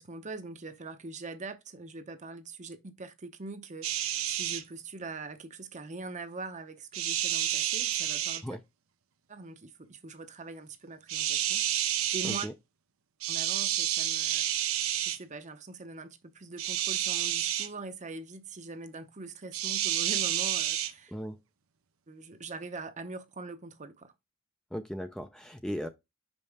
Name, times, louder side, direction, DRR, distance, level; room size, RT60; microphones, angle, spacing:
voice 1, 0.0-8.6 9.3-12.5 13.3-14.8 15.0-21.1 22.1-24.1, right 3 dB, 35° right, 0.7 m, -43 dB
sound 1, 3.8-4.6 6.9-8.4 11.1-12.5 13.2-15.2 16.6-17.7 19.5-20.9, right 11 dB, 85° right, 0.7 m, -30 dB
voice 2, 24.7-25.9, equal, 5° left, 0.4 m, -37 dB
5.4 x 5.3 x 3.4 m
head